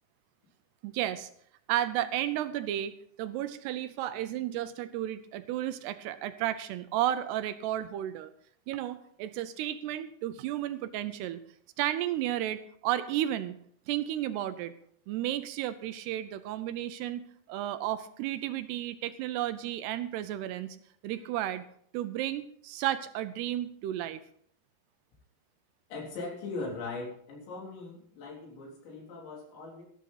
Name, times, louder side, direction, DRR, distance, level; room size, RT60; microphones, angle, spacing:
voice 1, 0.8-1.3 1.7-2.9 3.2-8.3 8.7-11.4 11.8-13.6 13.9-14.7 15.1-20.8 21.0-21.7 21.9-24.2, right 12 dB, 80° right, 12 dB, 2.6 m, -33 dB
voice 2, 25.9-29.8, left 3 dB, 90° left, -1 dB, 6.0 m, -40 dB
14.0 x 12.0 x 4.0 m, 0.63 s
omnidirectional pair, 5.0 m